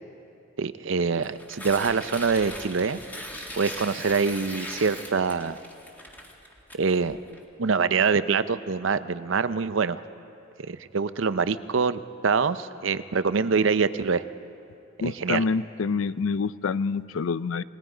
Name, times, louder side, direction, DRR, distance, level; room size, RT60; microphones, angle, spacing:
voice 1, 0.6-3.0 3.6-5.6 6.7-7.2 7.6-10.0 10.6-14.2 15.0-15.5, right 5 dB, 65° right, 13 dB, 0.6 m, -25 dB
Tearing, 1.1-7.4, equal, 10° left, 2.1 m, -39 dB
voice 2, 15.0-17.6, left 4 dB, 80° left, 17 dB, 0.5 m, -27 dB
28.5 x 19.0 x 5.0 m, 2.7 s
head